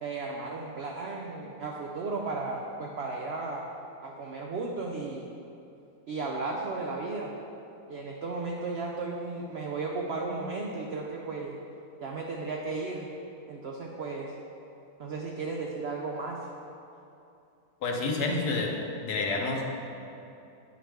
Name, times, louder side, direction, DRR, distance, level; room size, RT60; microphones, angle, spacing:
voice 1, 0.0-3.6 4.0-5.3 6.1-7.3 7.9-11.6 12.0-13.1 13.5-14.3 15.0-16.4, right 3 dB, 75° right, -1 dB, 0.5 m, -34 dB
voice 2, 17.8-19.8, left 3 dB, 75° left, 1 dB, 1.3 m, -29 dB
8.7 x 4.7 x 3.4 m, 2.7 s
omnidirectional pair, 1.7 m